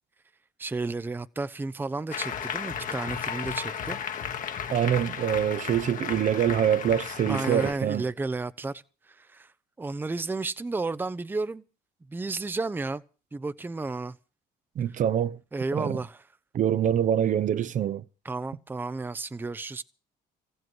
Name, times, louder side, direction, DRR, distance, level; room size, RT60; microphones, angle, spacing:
voice 1, 0.6-4.0 7.3-9.5 9.8-11.6 12.1-13.0 13.3-14.2 15.5-16.2 18.2-19.8, right 3 dB, 10° right, 0.7 m, -32 dB
Applause, 2.1-7.7, left 7 dB, 50° left, 1.5 m, -34 dB
voice 2, 4.7-8.0 14.8-15.4 15.7-16.0 16.5-18.0, right 9 dB, 50° right, 0.8 m, -25 dB
15.0 x 7.9 x 9.6 m
cardioid pair, 110°, 17 cm